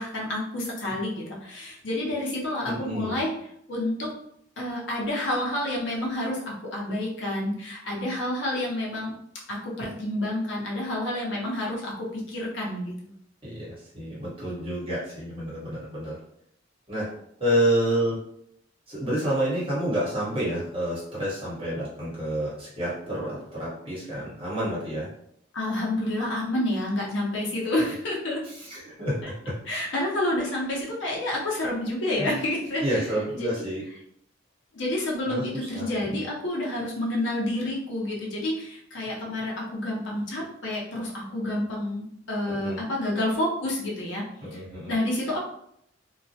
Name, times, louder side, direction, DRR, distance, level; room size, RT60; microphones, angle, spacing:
voice 1, 0.0-3.3 3.7-4.1 4.6-9.1 9.5-13.1 25.5-28.4 29.2-29.3 29.7-33.1 33.3-33.6 34.7-44.2 44.5-44.6 44.9-45.4, left 1 dB, 70° left, -3 dB, 0.6 m, -29 dB
voice 2, 2.6-3.2 13.4-16.2 16.9-17.1 17.4-18.2 18.9-25.1 28.6-29.3 32.2-32.3 32.8-33.8 35.3-36.2 42.5-42.8 44.4-44.9, right 1 dB, 30° right, -8 dB, 1.1 m, -29 dB
2.2 x 2.1 x 2.7 m, 0.73 s
head